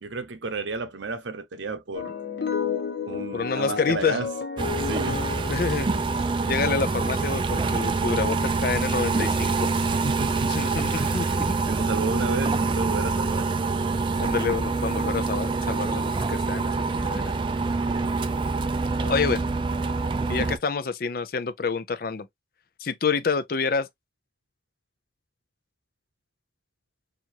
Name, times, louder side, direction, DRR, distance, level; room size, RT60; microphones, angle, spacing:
voice 1, 0.0-2.1 3.1-4.3 4.8-5.3 9.9-10.6 11.0-13.5, right 3 dB, 80° right, 0.7 m, -32 dB
sound 1, 1.9-6.9, left 6 dB, 70° left, 1.0 m, -32 dB
voice 2, 3.3-4.2 5.5-5.9 6.4-9.7 10.4-11.6 14.2-17.3 19.0-19.4 20.3-22.3 22.8-23.9, left 5 dB, 50° left, 0.5 m, -28 dB
sound 2, 4.6-20.6, right 3 dB, 25° right, 0.3 m, -26 dB
4.5 x 2.6 x 2.8 m
head